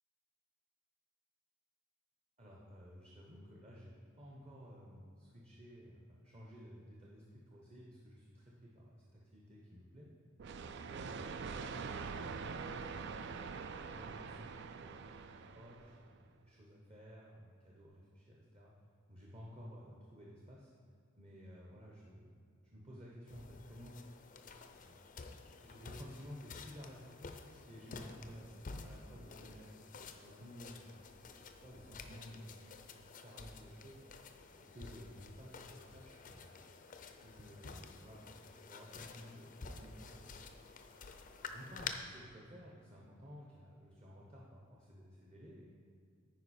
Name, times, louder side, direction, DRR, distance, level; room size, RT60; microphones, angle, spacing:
voice 1, 2.4-10.1 10.8-13.0 13.9-18.7 19.1-20.7 21.2-24.0 24.8-25.1 25.6-31.0 31.6-32.6 33.2-34.0 34.5-36.6 37.2-38.3 38.5-40.3 41.3-45.7, equal, 30° right, -4 dB, 0.9 m, -54 dB
sound 1, 10.4-16.1, right 5 dB, 60° right, 0.4 m, -44 dB
sound 2, 23.3-41.9, left 5 dB, 40° left, 0.5 m, -51 dB
9.4 x 5.0 x 4.3 m, 2.3 s
head